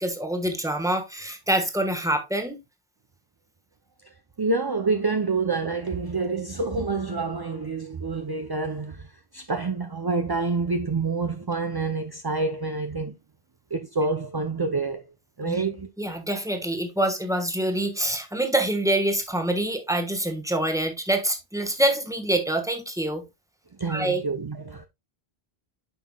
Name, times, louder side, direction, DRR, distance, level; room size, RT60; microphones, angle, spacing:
voice 1, 0.0-2.6 15.4-15.6 16.0-23.2 23.9-24.2, right 1 dB, 5° right, 1.1 m, -26 dB
voice 2, 4.4-13.2 13.7-15.0 15.4-15.9 23.8-24.9, right 3 dB, 30° right, 0.4 m, -27 dB
9.5 x 5.7 x 2.2 m
omnidirectional pair, 1.1 m